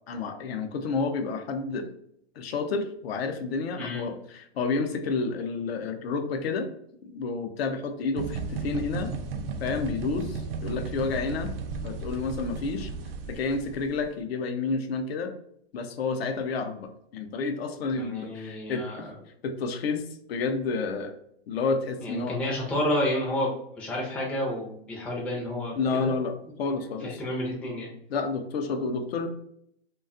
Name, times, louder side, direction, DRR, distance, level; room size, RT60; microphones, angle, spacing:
voice 1, 0.1-2.0 2.4-6.7 7.0-11.6 11.8-12.9 13.3-15.3 15.7-19.1 19.4-20.0 20.3-21.1 21.5-22.4 25.8-27.2 28.1-29.3, left 4 dB, 70° left, 7 dB, 0.5 m, -30 dB
sound 1, 8.2-14.0, right 4 dB, 65° right, 0.4 m, -35 dB
voice 2, 17.9-19.1 22.0-26.1 27.0-27.9, left 1 dB, 5° left, -4 dB, 0.4 m, -30 dB
2.5 x 2.3 x 2.5 m, 0.70 s
hypercardioid pair, 130°, 32 cm